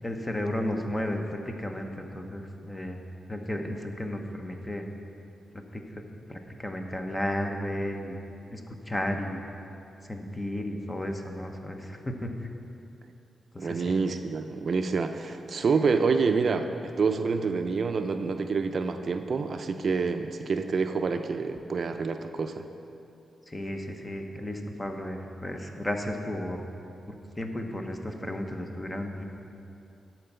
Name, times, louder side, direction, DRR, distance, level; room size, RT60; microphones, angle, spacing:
voice 1, 0.0-3.0 3.3-4.9 5.7-6.0 6.3-8.2 8.5-8.6 8.9-9.4 10.0-12.3 13.5-13.9 23.5-26.6 27.1-29.2, left 1 dB, 15° left, 4 dB, 0.9 m, -33 dB
voice 2, 13.6-22.6, right 4 dB, 55° right, 7 dB, 0.4 m, -27 dB
11.5 x 4.4 x 6.8 m, 2.7 s
cardioid pair, 90°, 0 cm